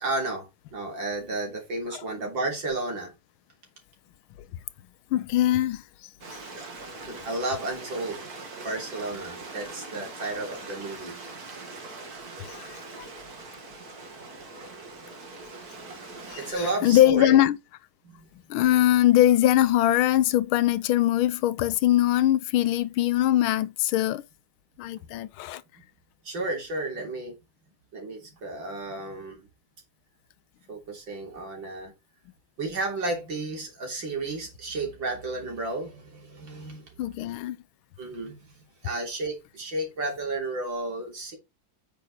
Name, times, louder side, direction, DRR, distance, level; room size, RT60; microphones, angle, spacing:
voice 1, 0.0-3.1 6.6-6.7 7.0-8.2 8.6-11.2 16.0-17.4 18.0-18.3 26.2-27.3 27.9-29.5 30.7-31.9 32.6-36.9 38.0-41.4, right 2 dB, 65° right, 3.9 m, -32 dB
voice 2, 5.1-5.8 6.3-6.4 7.1-7.2 12.4-13.1 16.3-17.6 18.5-24.2 24.8-25.6 37.0-37.6, left 13 dB, 80° left, 1.4 m, -22 dB
Stream, 6.2-16.5, right 3 dB, 45° right, 2.3 m, -42 dB
8.7 x 6.0 x 4.0 m
omnidirectional pair, 2.3 m